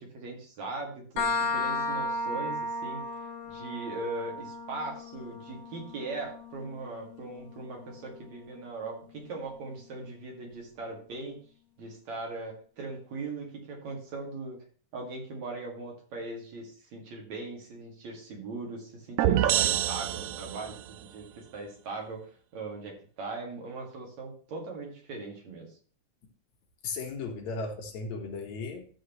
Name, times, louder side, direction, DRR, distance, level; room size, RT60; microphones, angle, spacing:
voice 1, 0.0-3.0 3.5-11.4 11.8-14.6 14.9-22.2 22.5-25.7, right 3 dB, 60° right, 0 dB, 3.3 m, -39 dB
sound 1, 1.2-8.6, left 2 dB, 45° left, 1.6 m, -35 dB
sound 2, 19.2-20.9, right 12 dB, 75° right, 1.7 m, -26 dB
voice 2, 26.8-28.9, left 4 dB, 65° left, 4 dB, 2.6 m, -36 dB
13.0 x 7.8 x 3.1 m, 0.40 s
omnidirectional pair, 3.6 m